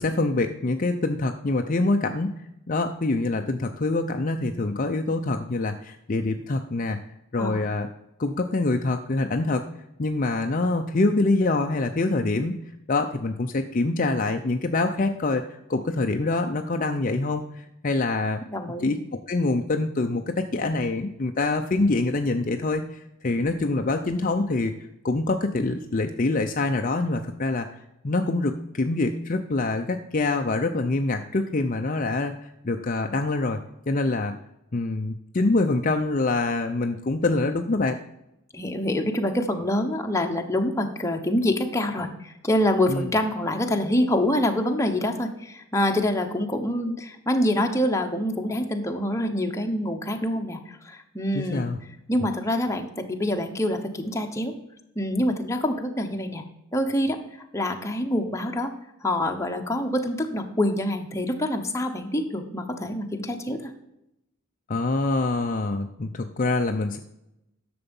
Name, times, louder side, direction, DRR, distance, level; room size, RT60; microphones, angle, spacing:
voice 1, 0.0-2.3 2.7-7.0 7.3-7.9 8.2-9.6 10.0-12.6 12.9-15.4 15.7-18.4 18.8-19.0 19.3-24.7 25.0-27.7 28.0-33.6 33.9-34.3 34.7-38.0 42.9-43.1 51.3-51.8 64.7-67.0, left 2 dB, 40° left, 5 dB, 0.6 m, -25 dB
voice 2, 18.5-18.9 38.5-51.7 52.1-54.5 55.0-56.4 56.7-57.2 57.5-58.7 59.0-63.7, left 1 dB, 15° left, 4 dB, 1.0 m, -26 dB
11.0 x 6.9 x 5.4 m, 0.86 s
head